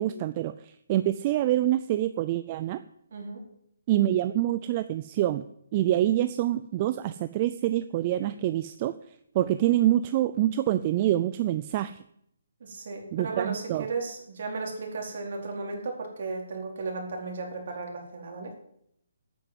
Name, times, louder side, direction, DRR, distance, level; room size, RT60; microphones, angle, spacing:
voice 1, 0.0-2.8 3.9-5.4 5.7-9.0 9.3-12.0 13.1-13.9, right 13 dB, 30° right, 12 dB, 0.5 m, -26 dB
voice 2, 3.1-3.4 12.6-18.5, right 3 dB, 55° right, 1 dB, 4.3 m, -35 dB
9.4 x 9.1 x 7.7 m, 0.72 s
hypercardioid pair, 160°, 0 cm